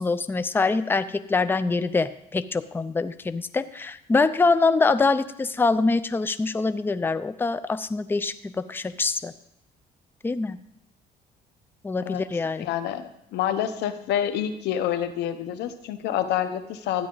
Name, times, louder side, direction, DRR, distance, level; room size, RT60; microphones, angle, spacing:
voice 1, 0.0-9.3 10.2-10.6 11.8-12.7, left 3 dB, 10° left, 12 dB, 0.5 m, -24 dB
voice 2, 12.6-17.1, left 10 dB, 80° left, 10 dB, 1.0 m, -27 dB
13.0 x 9.5 x 3.9 m, 0.76 s
cardioid pair, 110°, 17 cm